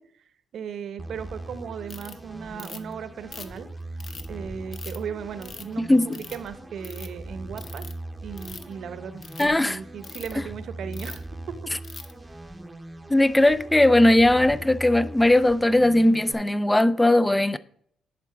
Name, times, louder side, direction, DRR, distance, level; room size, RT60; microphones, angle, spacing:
voice 1, 0.0-3.7 4.3-7.8 8.2-11.2, right 7 dB, 65° right, 0.8 m, -37 dB
sound 1, 1.0-16.3, right 2 dB, 10° right, 0.8 m, -40 dB
Ratchet pawl, 1.9-2.1 2.6-2.9 3.3-4.3 4.7-5.0 5.4-5.7 6.1-6.5 6.8-7.1 7.6-7.9 8.3-8.7 9.2-9.4 10.0-10.3 10.9-11.2 11.8-12.1, left 5 dB, 50° left, 0.8 m, -41 dB
voice 2, 5.8-6.2 9.4-9.8 13.1-17.6, left 1 dB, 10° left, 0.4 m, -19 dB
10.5 x 3.9 x 4.9 m
cardioid pair, 90°, 0 cm